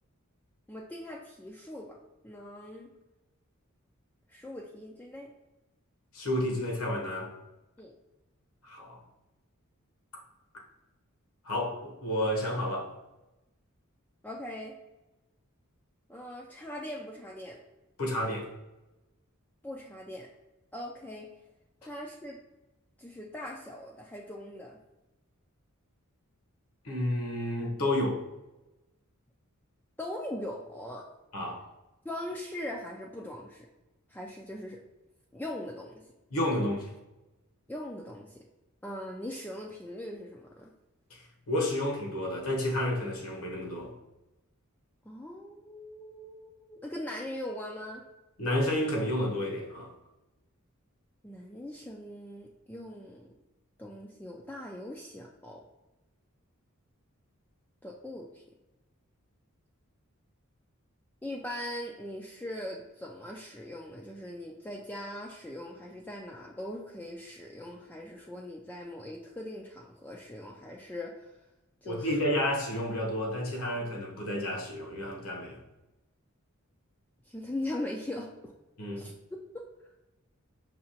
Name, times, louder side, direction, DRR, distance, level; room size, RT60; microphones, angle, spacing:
voice 1, 0.7-2.0 2.2-2.9 4.3-5.3 7.8-7.9 14.2-14.8 16.1-17.6 19.6-20.3 20.7-21.3 21.8-22.4 23.0-24.8 30.0-31.1 32.0-33.7 34.1-34.8 35.3-35.9 37.7-38.4 38.8-40.7 45.1-48.0 51.2-53.3 53.8-55.6 57.8-58.4 61.2-71.3 71.8-72.1 77.3-78.5 79.0-79.1, left 1 dB, 10° left, -2 dB, 0.3 m, -40 dB
voice 2, 6.1-7.3 8.6-9.0 10.5-10.6 11.4-13.0 18.0-18.5 26.8-28.2 31.3-31.6 36.3-36.9 41.1-43.9 48.4-49.9 71.8-75.6 78.8-79.0, left 1 dB, 75° left, 0 dB, 1.1 m, -31 dB
5.3 x 2.8 x 2.8 m, 1.0 s
head